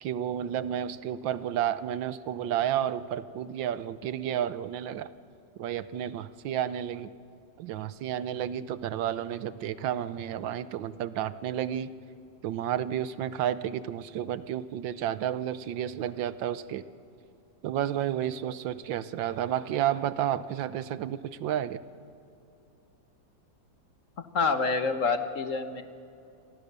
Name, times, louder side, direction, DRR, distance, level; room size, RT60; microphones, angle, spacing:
voice 1, 0.0-5.1 5.6-7.1 7.6-11.9 12.4-16.8 17.6-21.8, right 10 dB, 85° right, 14 dB, 1.5 m, -31 dB
voice 2, 24.2-25.8, left 4 dB, 50° left, 8 dB, 1.3 m, -27 dB
29.0 x 22.5 x 6.8 m, 2.6 s
omnidirectional pair, 2.0 m